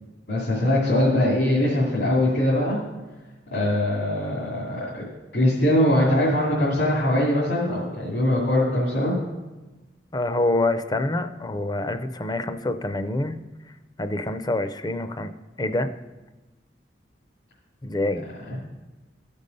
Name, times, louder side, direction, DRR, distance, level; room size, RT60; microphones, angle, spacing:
voice 1, 0.3-2.8 3.5-5.0 5.3-9.2 18.5-18.6, left 1 dB, 85° left, -6 dB, 2.4 m, -22 dB
voice 2, 10.1-13.4 14.0-15.3 15.6-15.9 17.8-18.3, left 2 dB, 25° left, 11 dB, 0.4 m, -26 dB
13.0 x 5.3 x 5.3 m, 1.1 s
head